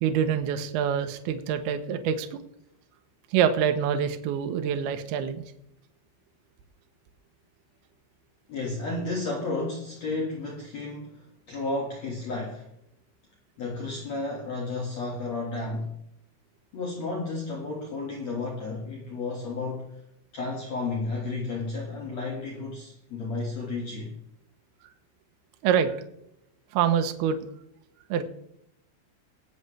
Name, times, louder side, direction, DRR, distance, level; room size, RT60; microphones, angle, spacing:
voice 1, 0.0-2.4 3.3-5.4 25.6-26.0 26.7-27.4 28.1-28.2, right 8 dB, 80° right, 7 dB, 2.7 m, -25 dB
voice 2, 8.5-12.7 13.6-15.9 16.7-20.0 20.3-24.1, left 3 dB, 50° left, -2 dB, 2.5 m, -32 dB
21.0 x 7.9 x 3.3 m, 0.76 s
omnidirectional pair, 4.8 m